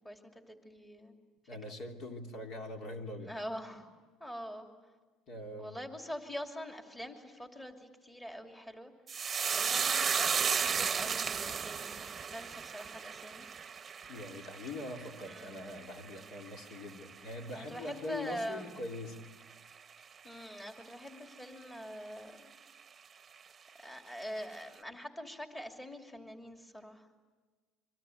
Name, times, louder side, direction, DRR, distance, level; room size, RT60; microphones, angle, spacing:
voice 1, 0.0-1.2 3.2-3.9 4.2-4.7 5.6-8.9 9.6-13.5 15.2-15.6 17.5-18.7 20.2-22.5 23.8-27.1, equal, 10° left, 3 dB, 2.8 m, -44 dB
voice 2, 1.5-3.3 5.3-5.8 14.1-19.2, left 2 dB, 60° left, 3 dB, 3.2 m, -43 dB
sound 1, 9.1-17.7 18.0-18.6 18.9-19.2, right 6 dB, 30° right, 0.9 m, -35 dB
26.0 x 24.0 x 9.3 m, 1.4 s
cardioid pair, 110°, 0 cm